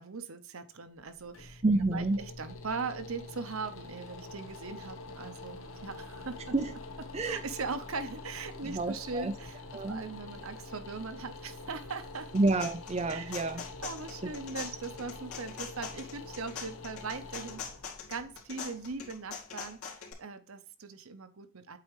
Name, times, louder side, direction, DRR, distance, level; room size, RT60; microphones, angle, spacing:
voice 1, 0.0-1.6 1.9-6.5 7.3-9.6 9.9-12.3 13.1-13.3 13.8-17.7 18.1-21.8, right 4 dB, 65° right, 0.8 m, -40 dB
sound 1, 0.9-19.9, left 2 dB, 60° left, 1.0 m, -46 dB
voice 2, 1.6-2.2 6.5-6.7 7.1-7.4 8.6-9.3 9.7-10.0 12.3-13.6 14.2-14.3, right 2 dB, 30° right, 0.5 m, -29 dB
sound 2, 12.1-20.1, left 6 dB, 80° left, 2.5 m, -43 dB
8.5 x 4.3 x 3.1 m
head